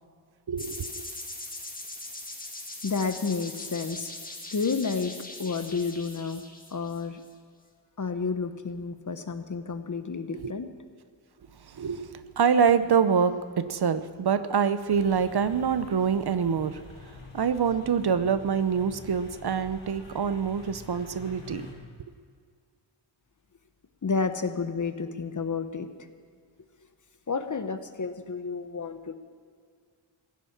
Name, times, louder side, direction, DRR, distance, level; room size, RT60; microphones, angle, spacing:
voice 1, 0.5-0.9 10.3-10.5 11.7-16.8 17.3-21.6, right 6 dB, 50° right, 12 dB, 0.7 m, -25 dB
sound 1, 0.6-7.3, left 2 dB, 15° left, 1.8 m, -41 dB
voice 2, 2.8-4.1 4.5-5.1 5.4-6.4 6.7-7.2 8.0-10.7 24.0-25.9 27.3-29.1, left 5 dB, 40° left, 9 dB, 1.0 m, -30 dB
sound 2, 14.8-21.7, left 3 dB, 70° left, 3.2 m, -47 dB
16.5 x 10.0 x 7.3 m, 2.1 s
wide cardioid pair, 90°, 49 cm